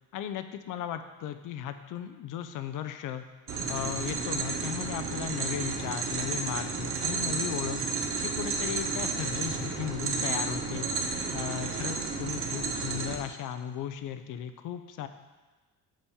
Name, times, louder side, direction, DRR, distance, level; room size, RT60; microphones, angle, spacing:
voice 1, 0.1-3.2 3.7-7.8 8.2-10.9 11.3-15.1, left 10 dB, 60° left, 9 dB, 0.7 m, -36 dB
sound 1, 3.5-13.2, right 4 dB, 35° right, 0.9 m, -32 dB
7.3 x 5.2 x 7.0 m, 1.3 s
cardioid pair, 170°, 37 cm